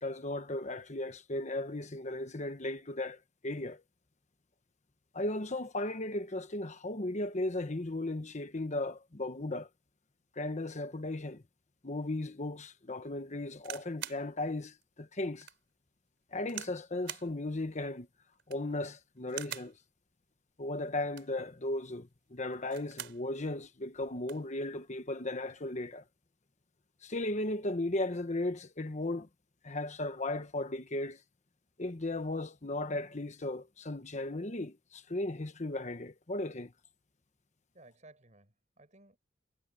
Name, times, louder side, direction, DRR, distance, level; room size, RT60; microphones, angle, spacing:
voice 1, 0.0-3.8 5.1-9.7 10.3-11.4 11.8-15.5 16.3-18.1 18.5-19.7 20.6-26.0 27.0-29.3 29.6-31.2 31.8-36.7, left 2 dB, 40° left, 1.1 m, -36 dB
sound 1, 13.6-14.2 14.8-14.9 15.4-15.6 16.5-16.8 17.1-17.3 18.3-18.7 19.3-19.7 21.0-21.4 22.5-23.2 23.6-23.7 23.9-24.5 25.3-25.6, right 10 dB, 75° right, 4.2 m, -44 dB
voice 2, 37.7-39.2, right 2 dB, 40° right, 5.4 m, -58 dB
head